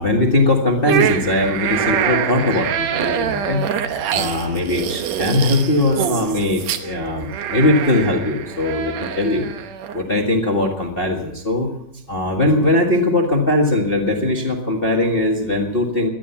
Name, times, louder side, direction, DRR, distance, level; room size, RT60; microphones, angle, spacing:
voice 1, 0.0-3.6 4.0-9.5 9.9-11.7 12.1-16.1, left 2 dB, 30° left, 1 dB, 1.1 m, -20 dB
sound 1, 0.8-10.0, right 9 dB, 65° right, 2.0 m, -25 dB
19.0 x 12.5 x 5.8 m, 0.81 s
omnidirectional pair, 3.7 m